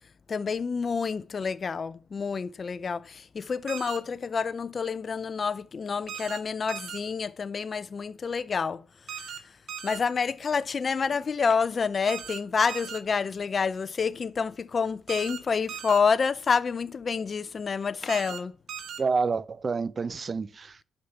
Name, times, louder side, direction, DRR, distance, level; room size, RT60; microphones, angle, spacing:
voice 1, 0.3-8.8 9.8-18.5, left 5 dB, 40° left, 0.6 m, -28 dB
sound 1, 3.7-4.0 6.1-6.4 6.7-7.0 9.1-9.4 9.7-10.0 12.1-12.4 12.7-13.0 15.1-15.4 15.7-16.0 18.1-18.4 18.7-19.0, right 9 dB, 75° right, 1.5 m, -38 dB
voice 2, 19.0-20.8, right 4 dB, 35° right, 0.6 m, -28 dB
9.7 x 5.7 x 6.8 m
cardioid pair, 90°, 0 cm